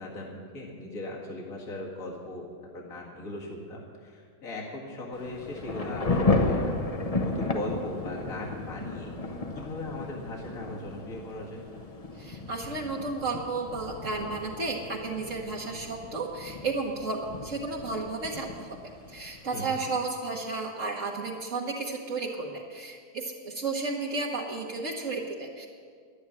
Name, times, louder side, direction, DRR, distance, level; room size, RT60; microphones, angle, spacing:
voice 1, 0.0-2.5 2.7-6.8 7.2-11.6 19.5-19.8, left 2 dB, 65° left, -3 dB, 2.4 m, -39 dB
Thunder / Rain, 5.1-19.6, left 3 dB, 30° left, 0.8 m, -33 dB
voice 2, 12.2-25.7, right 3 dB, 55° right, -2 dB, 1.5 m, -33 dB
11.5 x 9.6 x 9.6 m, 2.1 s
omnidirectional pair, 1.6 m